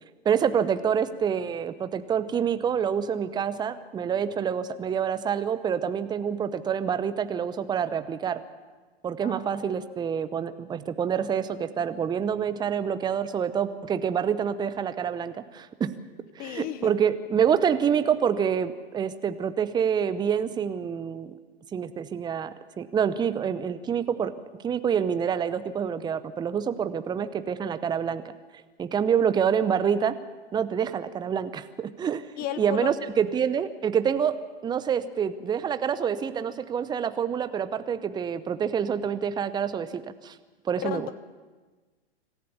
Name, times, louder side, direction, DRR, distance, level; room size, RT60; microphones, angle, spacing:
voice 1, 0.2-8.4 9.0-15.9 16.4-21.3 21.7-24.3 24.6-28.3 28.8-30.2 30.5-32.3 32.6-34.4 34.6-40.4 40.6-41.1, right 7 dB, 15° right, 12 dB, 0.8 m, -27 dB
voice 2, 9.2-9.7 16.4-16.9 32.4-32.9 40.8-41.1, left 12 dB, 30° left, 14 dB, 0.8 m, -34 dB
25.5 x 15.0 x 7.2 m, 1.3 s
figure-of-eight pair, 105°, 31 cm